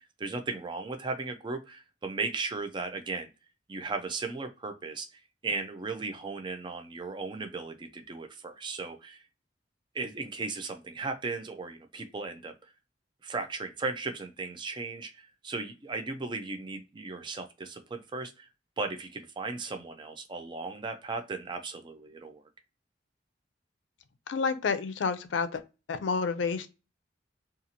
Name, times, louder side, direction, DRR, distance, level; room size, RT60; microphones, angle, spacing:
voice 1, 0.0-3.3 3.7-9.2 9.9-12.7 13.2-18.5 18.8-22.4, right 3 dB, 25° right, 0.4 m, -36 dB
voice 2, 24.3-25.6 25.9-26.7, left 5 dB, 90° left, 0.4 m, -29 dB
2.5 x 2.4 x 2.8 m
head